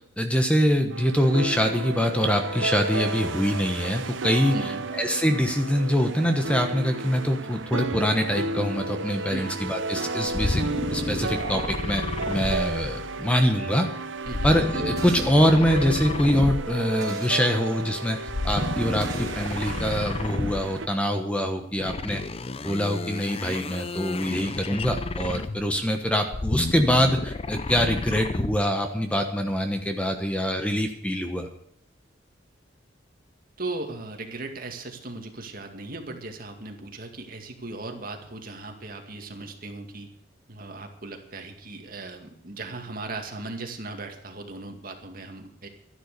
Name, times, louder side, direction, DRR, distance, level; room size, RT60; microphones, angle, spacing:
voice 1, 0.2-4.7 5.0-10.6 10.9-12.0 12.3-13.9 14.4-18.2 18.4-22.2 22.6-31.5, equal, 5° left, 5 dB, 1.1 m, -24 dB
sound 1, 0.9-20.9, right 3 dB, 80° right, 0.8 m, -33 dB
voice 2, 4.5-4.8 9.3-9.6 14.3-14.5 33.6-40.1 40.5-45.7, right 2 dB, 50° right, 4 dB, 2.2 m, -37 dB
sound 2, 10.3-13.3 14.3-17.0 18.2-20.8 21.8-25.8 26.2-28.7, left 2 dB, 30° left, 0.5 m, -31 dB
sound 3, 15.0-15.3 17.0-17.4 19.0-19.4, right 3 dB, 15° right, 4.2 m, -41 dB
12.5 x 11.0 x 6.7 m, 0.69 s
head